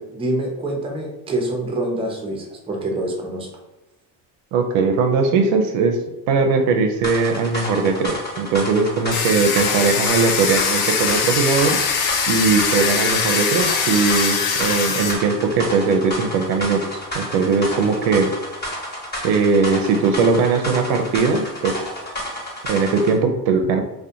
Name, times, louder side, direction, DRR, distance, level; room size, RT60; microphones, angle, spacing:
voice 1, 0.0-3.5, right 1 dB, 10° right, 1 dB, 0.5 m, -26 dB
voice 2, 4.5-6.0 6.3-11.8 12.3-18.3 19.2-21.8 22.7-23.8, right 4 dB, 65° right, 5 dB, 0.5 m, -19 dB
sound 1, 7.0-23.2, equal, 20° left, 1.1 m, -31 dB
Domestic sounds home sounds, 9.1-15.1, left 6 dB, 50° left, 0.6 m, -22 dB
2.4 x 2.2 x 2.7 m, 1.0 s
supercardioid pair, 85°, 50 cm